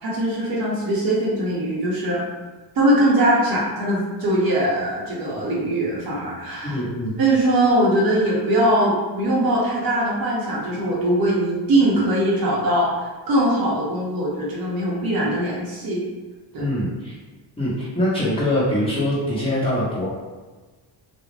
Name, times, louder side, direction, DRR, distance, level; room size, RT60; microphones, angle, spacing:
voice 1, 0.0-2.2 2.7-6.8 7.2-16.0 16.5-16.7, right 1 dB, 50° right, -5 dB, 0.7 m, -21 dB
voice 2, 6.6-7.1 16.6-17.1 17.6-20.1, left 1 dB, 10° left, -10 dB, 0.8 m, -23 dB
2.3 x 2.0 x 3.1 m, 1.3 s
cardioid pair, 140°, 47 cm